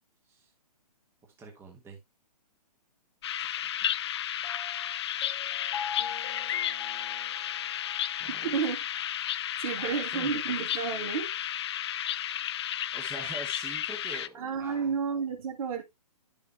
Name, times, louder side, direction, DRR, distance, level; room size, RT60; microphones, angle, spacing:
voice 1, 1.4-2.0 3.4-3.5 8.2-8.5 9.7-10.5 12.9-14.9, right 3 dB, 10° right, 1.5 m, -44 dB
sound 1, 3.2-14.3, left 11 dB, 40° left, 0.4 m, -33 dB
Piano, 4.4-8.3, left 7 dB, 55° left, 1.8 m, -42 dB
voice 2, 8.3-8.8 9.4-11.3 14.3-15.8, right 6 dB, 55° right, 2.8 m, -31 dB
11.0 x 7.0 x 2.3 m
hypercardioid pair, 135°, 21 cm